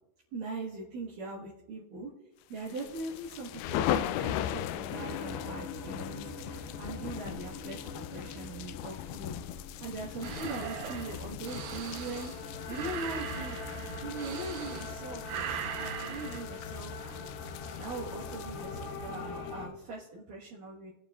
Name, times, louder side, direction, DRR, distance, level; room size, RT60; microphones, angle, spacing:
voice 1, 0.3-2.1 2.5-9.4 9.8-13.6 14.0-17.3 17.8-20.9, right 2 dB, 60° right, -6 dB, 2.6 m, -41 dB
sound 1, 2.6-19.5, left 11 dB, 85° left, 2.7 m, -39 dB
sound 2, 4.9-19.7, left 3 dB, 65° left, 3.3 m, -43 dB
sound 3, 10.2-15.0 15.2-16.4, right 9 dB, 85° right, 3.1 m, -40 dB
19.0 x 9.5 x 2.4 m, 0.91 s
omnidirectional pair, 4.9 m